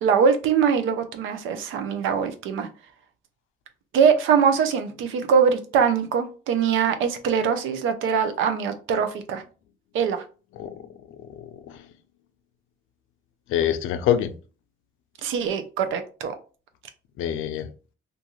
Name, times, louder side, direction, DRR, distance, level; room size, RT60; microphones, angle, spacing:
voice 1, 0.0-2.7 3.9-9.4 9.9-10.2 15.2-16.3, right 6 dB, 85° right, 8 dB, 0.5 m, -22 dB
voice 2, 11.4-11.9 13.5-14.3 17.2-17.7, left 10 dB, 85° left, 10 dB, 0.4 m, -25 dB
2.6 x 2.3 x 2.9 m, 0.36 s
cardioid pair, 90°, 20 cm